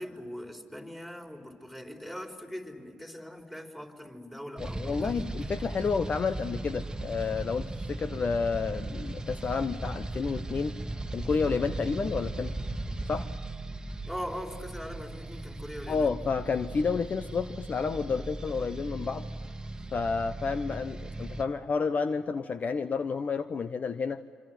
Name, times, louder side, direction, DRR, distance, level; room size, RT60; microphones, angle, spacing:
voice 1, 0.0-5.5 14.0-16.1, equal, 5° left, 2 dB, 4.5 m, -41 dB
voice 2, 4.6-10.7 11.1-12.5 13.1-13.3 15.9-19.3 19.9-24.2, left 5 dB, 45° left, 12 dB, 0.9 m, -30 dB
sound 1, 4.6-21.4, right 2 dB, 20° right, 1.6 m, -37 dB
26.5 x 25.5 x 7.9 m, 2.1 s
hypercardioid pair, 50°, 4 cm